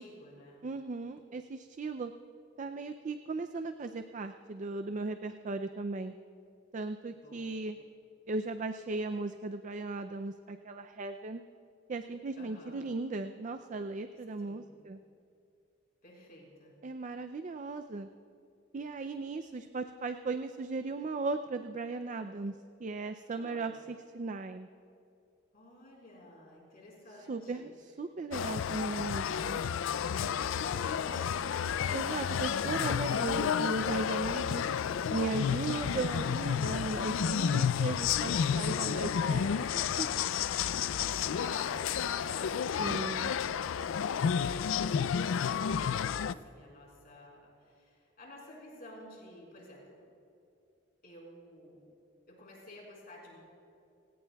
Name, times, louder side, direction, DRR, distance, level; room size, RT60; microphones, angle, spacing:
voice 1, 0.0-0.6 7.1-7.6 12.3-12.9 14.4-14.6 16.0-16.7 23.3-23.7 25.5-27.7 30.2-31.8 41.0-49.9 51.0-51.8 52.3-53.4, left 1 dB, 45° left, -3 dB, 4.5 m, -52 dB
voice 2, 0.6-2.1 2.6-6.1 6.7-7.8 8.3-11.4 11.9-15.0 16.8-18.1 18.7-24.7 27.3-29.6 31.9-34.7 35.1-40.1 42.8-43.3, right 3 dB, 40° right, 8 dB, 0.4 m, -37 dB
sound 1, 28.3-46.3, left 7 dB, 75° left, 0.4 m, -31 dB
27.5 x 17.0 x 2.3 m, 2.6 s
head